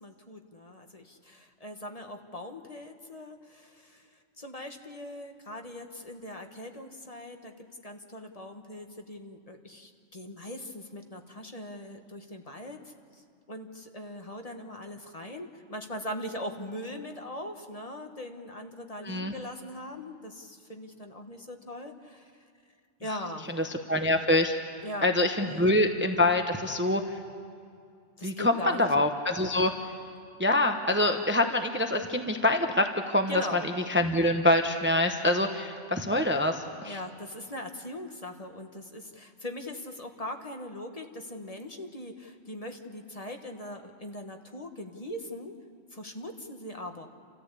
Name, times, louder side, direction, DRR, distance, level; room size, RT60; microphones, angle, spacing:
voice 1, 0.0-4.1 4.4-7.5 7.8-13.2 13.5-22.3 23.0-23.6 24.8-25.1 25.4-25.7 28.2-28.9 33.3-33.6 36.8-45.5 45.9-47.1, left 1 dB, 30° left, 4 dB, 1.4 m, -40 dB
voice 2, 23.6-24.5 25.0-27.0 28.2-29.7 30.4-37.0, left 1 dB, 10° right, 5 dB, 0.9 m, -25 dB
30.0 x 14.0 x 8.4 m, 2.3 s
omnidirectional pair, 1.2 m